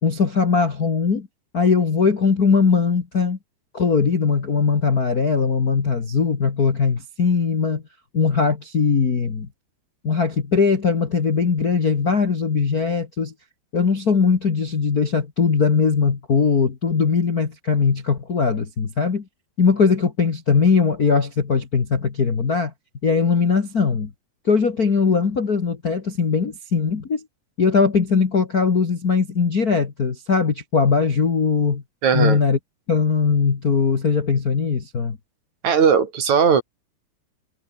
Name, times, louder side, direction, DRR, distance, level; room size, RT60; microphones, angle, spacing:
voice 1, 0.0-1.3 1.5-3.4 3.7-7.8 8.1-9.5 10.0-13.3 13.7-19.2 19.6-22.7 23.0-24.1 24.4-27.2 27.6-31.8 32.1-32.6 32.9-35.2, left 5 dB, 85° left, 0.8 m, -20 dB
voice 2, 32.0-32.4 35.6-36.6, right 6 dB, 50° right, 3.4 m, -17 dB
omnidirectional pair, 4.9 m